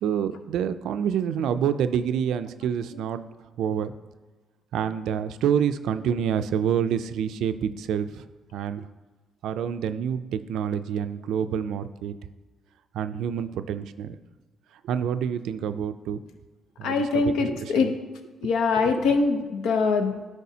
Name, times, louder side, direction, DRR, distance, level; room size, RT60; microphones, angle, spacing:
voice 1, 0.0-3.2 3.6-3.9 4.7-8.2 8.5-8.8 9.4-12.1 12.9-14.2 14.8-16.2 16.8-17.3 17.8-17.9, right 8 dB, 80° right, 11 dB, 0.3 m, -27 dB
voice 2, 16.8-17.9 18.4-20.3, left 4 dB, 85° left, 6 dB, 0.7 m, -23 dB
10.5 x 4.7 x 2.8 m, 1.3 s
cardioid pair, 90°, 0 cm